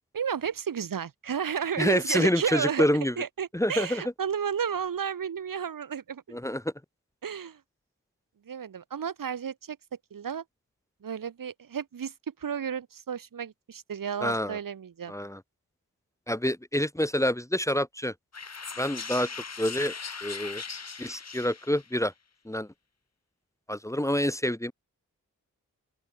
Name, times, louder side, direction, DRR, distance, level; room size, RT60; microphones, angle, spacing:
voice 1, 0.1-2.9 3.2-6.4 7.2-7.6 8.5-9.8 10.1-10.4 11.0-15.1, right 7 dB, 75° right, 2.4 m, -32 dB
voice 2, 1.8-3.1 3.5-4.0 6.3-6.6 14.2-14.6 15.1-15.4 16.3-18.1 18.8-19.3 19.6-19.9 20.2-20.6 21.0-22.1 22.4-22.7 23.7-24.7, left 1 dB, 10° left, 1.2 m, -27 dB
sound 1, 18.3-21.9, left 5 dB, 50° left, 2.2 m, -39 dB
open air
cardioid pair, 40°, 33 cm